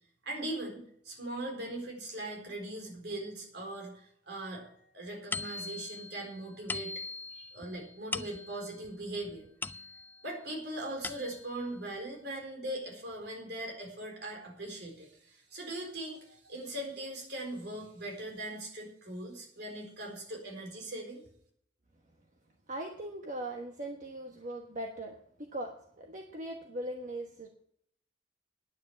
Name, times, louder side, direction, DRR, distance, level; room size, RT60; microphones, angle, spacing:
voice 1, 0.2-7.0 7.3-9.5 9.9-21.2, right 1 dB, 65° right, 2 dB, 4.3 m, -40 dB
sound 1, 5.3-10.3 10.7-11.6, left 3 dB, 10° left, 0.4 m, -41 dB
voice 2, 22.7-27.5, right 1 dB, 45° right, 2 dB, 1.2 m, -40 dB
10.5 x 9.1 x 7.0 m, 0.68 s
head